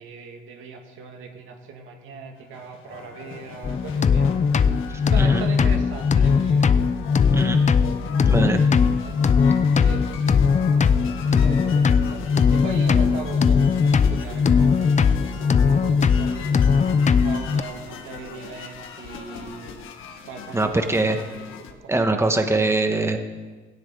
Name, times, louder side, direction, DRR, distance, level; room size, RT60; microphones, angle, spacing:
voice 1, 0.0-4.3 4.6-6.7 7.3-7.4 9.8-19.8 20.2-22.5, right 5 dB, 90° right, 2 dB, 2.4 m, -39 dB
sound 1, 2.4-21.7, left 7 dB, 85° left, 1.5 m, -40 dB
sound 2, 3.6-17.6, left 6 dB, 35° left, 0.7 m, -19 dB
voice 2, 4.9-5.4 7.3-7.6 8.3-8.6 20.5-21.2 21.9-23.2, right 2 dB, 15° right, 6 dB, 1.4 m, -22 dB
17.0 x 17.0 x 3.9 m, 1.3 s
cardioid pair, 90°, 20 cm